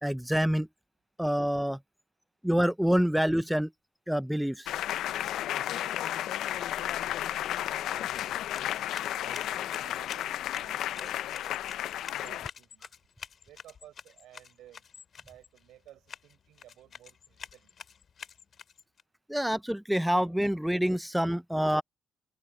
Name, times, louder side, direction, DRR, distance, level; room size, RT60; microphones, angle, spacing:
voice 1, 0.0-0.7 1.2-1.8 2.4-3.7 4.1-4.7 19.3-21.8, equal, 5° right, 0.3 m, -27 dB
sound 1, 4.7-12.5, left 12 dB, 80° left, 0.5 m, -33 dB
voice 2, 5.8-7.1 7.3-12.9 13.4-14.9 15.2-17.7, right 13 dB, 85° right, 4.0 m, -56 dB
sound 2, 7.9-19.0, left 7 dB, 55° left, 2.9 m, -48 dB
cardioid pair, 90°, 0 cm